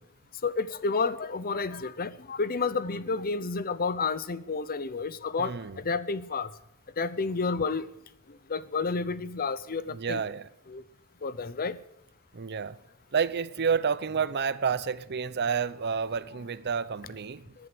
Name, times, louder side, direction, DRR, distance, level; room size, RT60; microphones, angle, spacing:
voice 1, 0.4-5.5 5.8-6.5 7.0-7.9 8.5-10.2 10.7-10.8 11.2-11.8, left 4 dB, 45° left, 0.7 m, -30 dB
voice 2, 5.4-5.8 9.9-10.5 12.3-12.8 13.1-17.5, right 6 dB, 50° right, 0.6 m, -30 dB
19.5 x 10.5 x 6.8 m
head